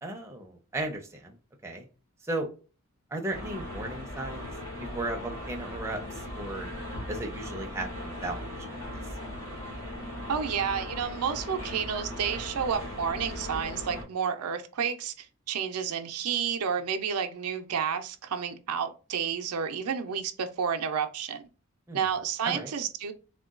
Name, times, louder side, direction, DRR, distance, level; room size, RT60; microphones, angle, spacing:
voice 1, 0.0-1.4 1.6-1.9 2.2-2.5 3.1-4.5 4.8-6.7 7.1-8.8 21.9-22.1 22.4-22.7, right 2 dB, 10° right, 0.4 m, -35 dB
sound 1, 3.3-14.0, left 1 dB, 65° left, 1.6 m, -38 dB
voice 2, 10.3-21.4 21.9-23.1, right 7 dB, 90° right, 0.5 m, -30 dB
3.7 x 2.2 x 2.4 m
head